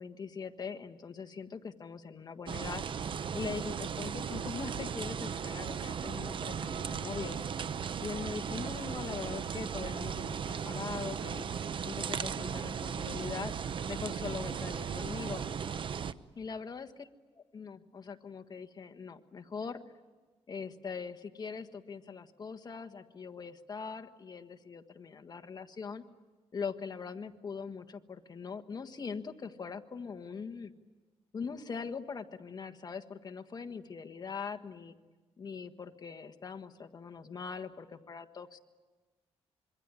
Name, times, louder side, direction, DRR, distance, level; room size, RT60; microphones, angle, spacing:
voice 1, 0.0-2.8 3.3-7.4 8.0-11.5 11.8-13.5 13.9-15.4 16.3-17.1 17.5-19.8 20.5-26.0 26.5-30.7 31.3-34.9 35.4-38.6, left 5 dB, 40° left, 7 dB, 1.5 m, -41 dB
sound 1, 2.5-16.1, right 7 dB, 50° right, 0.8 m, -37 dB
26.0 x 23.5 x 9.7 m, 1.3 s
cardioid pair, 120°, 11 cm